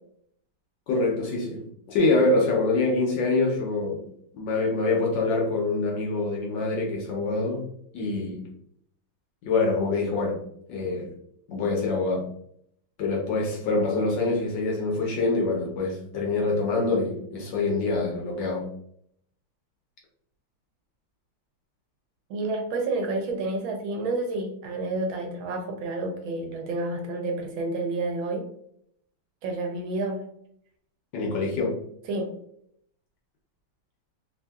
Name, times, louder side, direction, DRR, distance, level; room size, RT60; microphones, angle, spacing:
voice 1, 0.9-4.0 4.3-7.6 7.9-8.4 9.4-10.4 10.7-11.1 11.5-12.3 13.0-18.7 31.1-31.8, left 3 dB, 70° left, -1 dB, 1.2 m, -25 dB
voice 2, 22.3-28.5 29.4-30.3 32.1-32.3, right 2 dB, 75° right, 2 dB, 1.3 m, -29 dB
3.4 x 2.6 x 2.2 m, 0.69 s
omnidirectional pair, 2.4 m